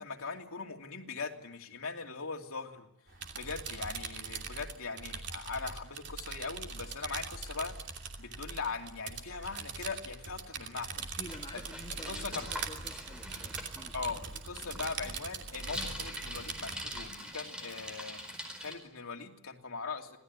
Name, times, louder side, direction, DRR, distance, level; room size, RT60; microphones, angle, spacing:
voice 1, 0.0-2.9 3.3-7.8 8.2-11.0 11.5-11.6 12.1-12.5 13.9-18.2 18.6-20.2, left 4 dB, 80° left, 2 dB, 2.8 m, -40 dB
sound 1, 3.1-17.1, right 5 dB, 55° right, 2.8 m, -42 dB
voice 2, 10.9-13.9, left 1 dB, 25° left, 2 dB, 1.7 m, -49 dB
Bicycle, 11.2-18.7, equal, 5° right, 4.6 m, -44 dB
26.5 x 18.0 x 9.6 m, 0.82 s
head